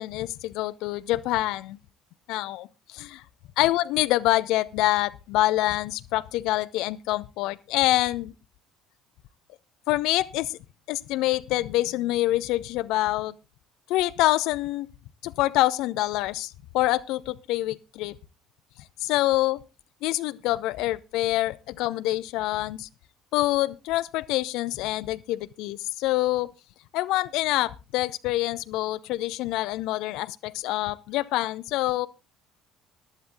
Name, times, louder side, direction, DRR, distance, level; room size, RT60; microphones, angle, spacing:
voice 1, 0.0-1.8 2.3-3.2 3.6-8.3 9.9-10.6 10.9-13.3 13.9-14.9 15.2-18.1 19.0-19.6 20.0-22.9 23.3-26.5 26.9-32.1, left 16 dB, 60° left, 0.6 m, -26 dB
14.5 x 11.0 x 3.8 m
figure-of-eight pair, 55°, 0 cm